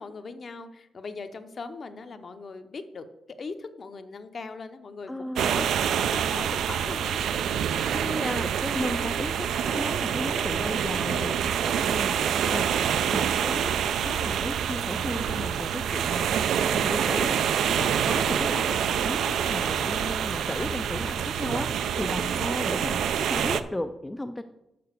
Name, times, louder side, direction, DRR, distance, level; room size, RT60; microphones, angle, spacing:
voice 1, 0.0-3.1 3.4-5.7 6.0-7.2 11.1-11.4 20.6-20.9 22.2-22.4, left 4 dB, 40° left, 9 dB, 0.7 m, -40 dB
voice 2, 5.1-5.7 7.9-11.4 11.9-12.8 13.1-13.7 14.0-24.4, left 1 dB, 10° left, 7 dB, 0.3 m, -35 dB
sound 1, 5.4-23.6, right 8 dB, 85° right, 0.4 m, -26 dB
6.8 x 5.6 x 6.6 m, 0.91 s
wide cardioid pair, 145°, 0 cm